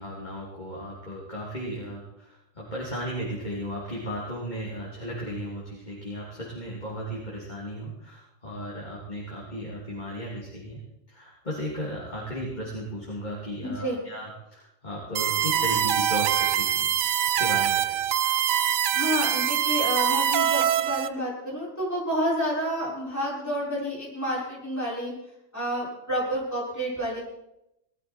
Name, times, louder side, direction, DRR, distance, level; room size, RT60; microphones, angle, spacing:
voice 1, 0.0-10.8 11.1-16.9 17.2-18.0, equal, 35° left, -5 dB, 3.4 m, -35 dB
voice 2, 13.6-14.0 18.9-25.1 25.5-27.2, equal, 10° left, -6 dB, 6.3 m, -29 dB
sound 1, 15.2-21.1, right 10 dB, 85° right, 1.1 m, -24 dB
20.0 x 13.0 x 4.6 m, 0.86 s
omnidirectional pair, 1.4 m